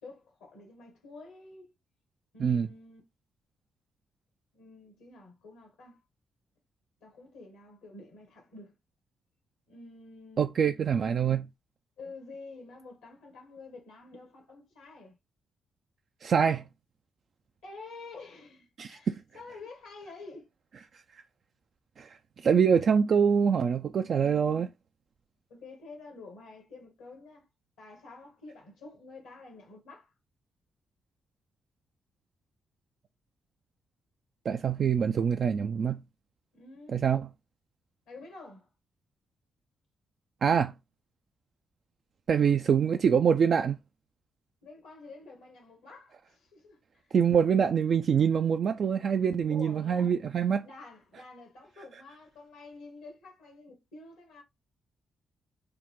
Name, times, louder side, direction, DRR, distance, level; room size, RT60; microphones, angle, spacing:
voice 1, 0.0-1.7 2.3-3.0 4.5-6.0 7.0-8.7 9.7-10.5 12.0-15.2 17.6-20.5 25.5-27.5 27.8-30.1 36.5-37.0 38.1-38.7 44.6-47.1 49.5-50.2 50.6-54.4, left 3 dB, 85° left, 1.4 m, -49 dB
voice 2, 10.4-11.5 16.2-16.6 18.8-19.2 21.1-21.2 22.0-24.7 34.5-36.0 36.9-37.2 40.4-40.7 42.3-43.8 47.1-50.7, right 7 dB, 55° right, 0.3 m, -25 dB
3.7 x 2.2 x 3.6 m
hypercardioid pair, 40°, 0 cm